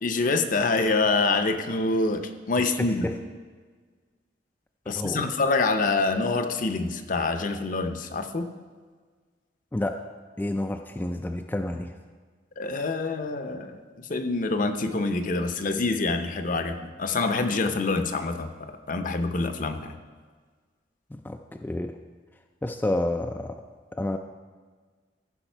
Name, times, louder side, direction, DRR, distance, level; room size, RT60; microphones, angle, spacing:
voice 1, 0.0-3.1 4.9-8.5 12.6-20.0, left 3 dB, 50° left, 7 dB, 0.7 m, -26 dB
voice 2, 2.8-3.1 5.0-5.3 9.7-10.0 10.4-11.9 21.1-22.0 22.6-23.6 23.9-24.2, left 1 dB, 10° left, 4 dB, 0.3 m, -29 dB
14.5 x 5.7 x 4.5 m, 1.5 s
head